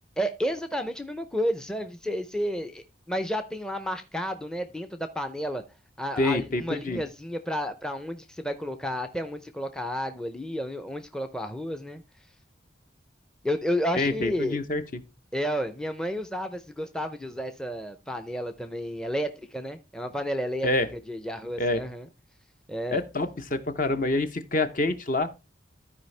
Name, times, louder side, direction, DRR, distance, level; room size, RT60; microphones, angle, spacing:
voice 1, 0.2-5.6 6.0-12.0 13.4-14.6 15.3-20.7 21.1-22.1 22.7-23.0, equal, 5° left, 0.5 m, -31 dB
voice 2, 6.2-7.0 13.9-15.0 20.6-20.9 21.6-21.8 22.9-25.3, left 2 dB, 45° left, 0.7 m, -27 dB
13.5 x 4.9 x 3.2 m
head